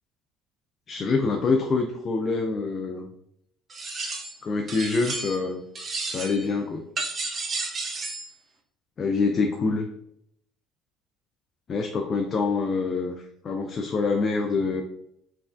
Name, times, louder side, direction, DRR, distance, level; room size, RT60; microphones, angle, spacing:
voice 1, 0.9-3.1 4.4-5.6 6.1-6.9 9.0-9.9 11.7-14.8, left 4 dB, 35° left, 4 dB, 0.3 m, -26 dB
sound 1, 3.7-4.4 4.7-5.5 5.7-6.5 7.0-8.3, right 3 dB, 35° right, 0.5 m, -32 dB
3.1 x 2.3 x 2.4 m, 0.73 s
cardioid pair, 115°, 0 cm